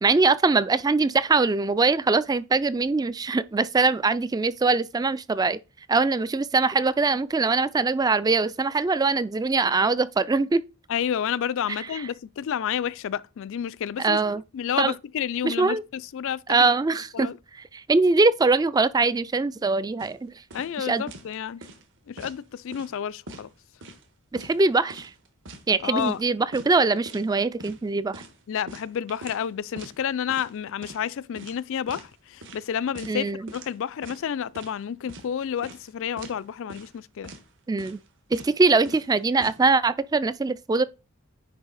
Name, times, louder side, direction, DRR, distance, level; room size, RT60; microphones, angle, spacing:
voice 1, 0.0-5.6 5.9-10.6 11.7-12.1 14.0-14.4 14.8-14.9 15.4-15.8 16.5-17.3 17.7-20.3 20.8-21.0 24.3-25.1 25.7-28.2 33.1-33.5 37.7-38.0 38.3-40.8, right 3 dB, 15° right, 0.3 m, -22 dB
voice 2, 10.9-14.2 14.5-16.7 17.1-17.4 20.5-21.6 22.1-23.5 25.8-26.2 28.5-37.3, left 8 dB, 60° left, 0.3 m, -30 dB
sound 1, 20.0-20.2 20.5-20.8 21.1-21.3 21.6-22.4 22.7-23.0 23.3-24.0 24.4-24.6 24.9-26.2 26.5-26.7 27.1-27.3 27.6-27.8 28.1-29.5 29.8-30.0 30.3-30.6 30.8-31.1 31.4-32.1 32.4-32.6 32.9-33.2 33.5-33.7 34.0-34.8 35.1-35.3 35.6-35.9 36.2-36.4 36.7-37.0 37.2-37.4 37.8-38.1 38.3-38.6 38.9-39.6, right 2 dB, 60° right, 1.4 m, -43 dB
9.5 x 3.3 x 4.1 m
head